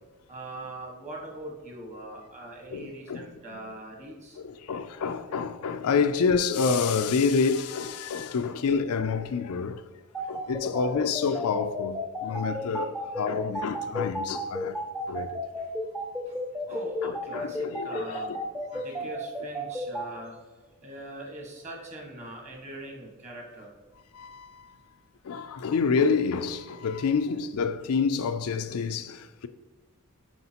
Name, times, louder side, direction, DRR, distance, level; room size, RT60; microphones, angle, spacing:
voice 1, 0.3-4.4 16.7-18.3 18.7-20.4 20.8-23.7, right 1 dB, 30° right, 1.5 m, -41 dB
voice 2, 2.7-3.3 4.4-9.8 10.3-14.8 15.1-15.4 17.0-18.4 18.7-19.1 24.1-24.7 25.2-29.5, left 5 dB, 75° left, 0.4 m, -28 dB
sound 1, 10.1-20.1, left 1 dB, 5° right, 0.6 m, -33 dB
7.8 x 4.8 x 2.9 m
head